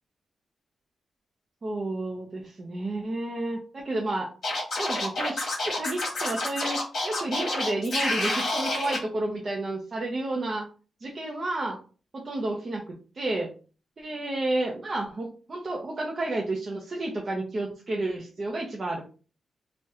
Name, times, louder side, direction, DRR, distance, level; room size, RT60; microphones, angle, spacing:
voice 1, 1.6-4.3 4.7-6.8 7.0-10.7 11.0-11.8 12.1-13.5 14.0-19.0, right 2 dB, 35° right, -2 dB, 0.5 m, -31 dB
Scratching (performance technique), 4.4-9.0, left 2 dB, 45° left, 1.1 m, -28 dB
2.8 x 2.1 x 3.5 m, 0.37 s
wide cardioid pair, 170°, 0 cm